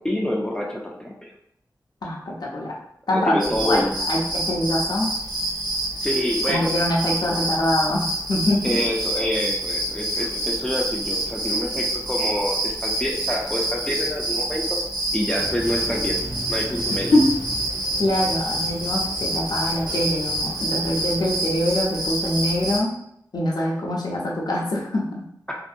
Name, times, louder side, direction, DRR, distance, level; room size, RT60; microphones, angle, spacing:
voice 1, 0.0-1.3 3.1-3.9 6.0-6.7 8.6-14.8 15.1-16.2 16.5-17.1 25.5-25.6, left 1 dB, 10° left, -2 dB, 0.4 m, -27 dB
voice 2, 2.0-2.8 3.1-5.1 6.5-8.7 17.1-17.3 18.0-22.9 23.3-25.2, left 1 dB, 70° left, -2 dB, 0.6 m, -24 dB
sound 1, 3.4-22.8, right 1 dB, 85° right, 0.9 m, -27 dB
sound 2, 15.4-21.4, right 1 dB, 65° right, 0.6 m, -37 dB
2.6 x 2.6 x 2.5 m, 0.73 s
wide cardioid pair, 85°, 7 cm